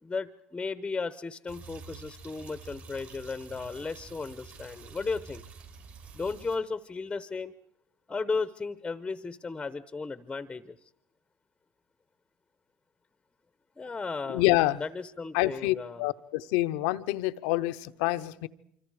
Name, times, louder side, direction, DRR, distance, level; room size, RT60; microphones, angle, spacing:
voice 1, 0.0-5.4 6.1-7.5 8.1-10.8 13.8-14.4 14.8-16.1, left 4 dB, 15° left, 13 dB, 0.9 m, -35 dB
sound 1, 1.5-6.6, right 5 dB, 55° right, 6.6 m, -48 dB
voice 2, 14.3-14.8 15.3-18.5, left 18 dB, 75° left, 13 dB, 0.8 m, -27 dB
26.0 x 25.0 x 4.9 m, 0.74 s
supercardioid pair, 100°, 4 cm